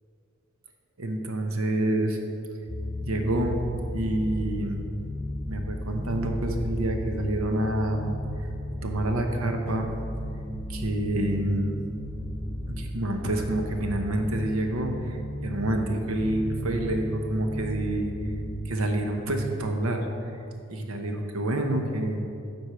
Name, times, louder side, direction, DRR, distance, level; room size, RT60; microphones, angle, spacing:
voice 1, 1.0-2.2 3.0-3.6 3.9-4.8 5.5-8.1 8.8-9.9 10.7-11.8 12.8-18.1 18.6-20.1 20.7-22.2, right 1 dB, 90° right, 4 dB, 0.9 m, -28 dB
sound 1, 2.7-18.6, left 1 dB, 20° left, 0.9 m, -34 dB
7.9 x 4.6 x 5.7 m, 2.5 s
head